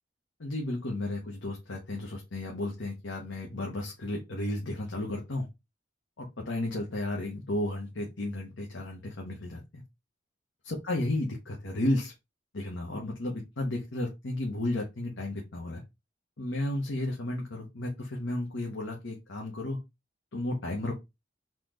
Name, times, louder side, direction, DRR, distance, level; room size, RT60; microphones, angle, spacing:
voice 1, 0.4-5.5 6.2-9.8 10.6-12.1 12.5-15.8 16.4-19.8 20.3-20.9, left 1 dB, 85° left, -1 dB, 1.2 m, -33 dB
4.3 x 3.1 x 3.9 m, 0.22 s
head